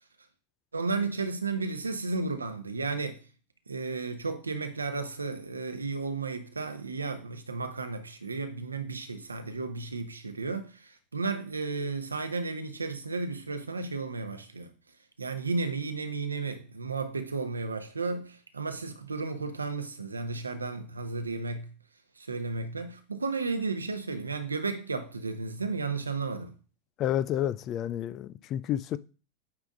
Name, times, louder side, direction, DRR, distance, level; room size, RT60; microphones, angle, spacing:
voice 1, 0.7-3.2 3.7-14.7 15.2-21.7 22.2-26.5, right 4 dB, 80° right, 0.9 m, -33 dB
voice 2, 27.0-29.0, left 11 dB, 40° left, 0.4 m, -30 dB
8.8 x 3.6 x 3.9 m
figure-of-eight pair, 85°, 0 cm